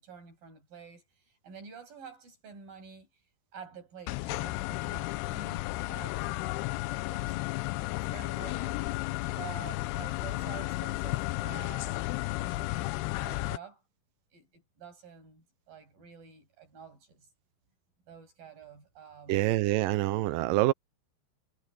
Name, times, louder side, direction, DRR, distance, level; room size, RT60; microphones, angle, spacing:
voice 1, 0.0-3.1 3.5-6.6 6.9-7.4 7.9-8.9 9.3-12.1 12.4-13.8 14.3-17.3 18.1-19.5, right 7 dB, 60° right, 9.1 m, -49 dB
sound 1, 4.1-13.6, left 20 dB, 85° left, 2.6 m, -33 dB
voice 2, 19.3-20.7, right 17 dB, 75° right, 2.1 m, -26 dB
omnidirectional pair, 4.6 m